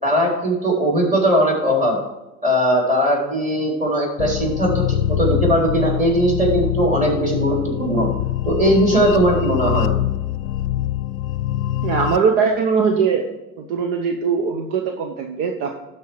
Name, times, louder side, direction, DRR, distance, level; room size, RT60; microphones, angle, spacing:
voice 1, 0.0-2.0 2.4-8.1 8.5-9.9, right 1 dB, 15° right, -2 dB, 3.7 m, -19 dB
sound 1, 4.2-12.2, left 12 dB, 70° left, 0.6 m, -24 dB
voice 2, 11.8-13.3 13.6-15.7, right 6 dB, 55° right, 4 dB, 1.0 m, -20 dB
12.5 x 4.6 x 4.7 m, 1.0 s
hypercardioid pair, 75°, 42 cm